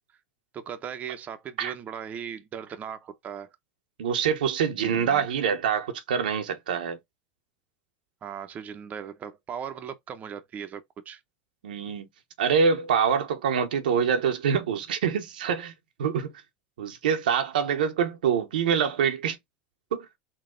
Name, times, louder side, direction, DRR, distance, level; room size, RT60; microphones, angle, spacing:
voice 1, 0.5-3.5 4.8-5.2 8.2-11.2, right 8 dB, 35° right, 0.7 m, -38 dB
voice 2, 4.0-7.0 11.6-12.1 12.4-15.7 16.0-16.3 16.8-19.4 19.9-20.1, right 7 dB, 90° right, 0.9 m, -25 dB
4.0 x 2.3 x 3.7 m
supercardioid pair, 110°, 5 cm